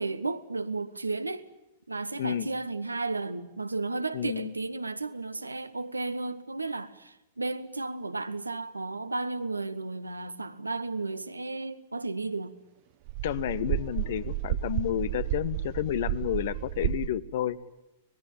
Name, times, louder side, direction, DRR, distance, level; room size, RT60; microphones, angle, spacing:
voice 1, 0.0-1.4 1.9-12.5, right 3 dB, 80° right, 1.1 m, -33 dB
voice 2, 4.1-4.5 13.2-17.6, left 11 dB, 55° left, 0.9 m, -31 dB
sound 1, 13.1-17.1, right 14 dB, 45° right, 1.0 m, -32 dB
25.5 x 20.0 x 8.7 m
figure-of-eight pair, 100°, 0 cm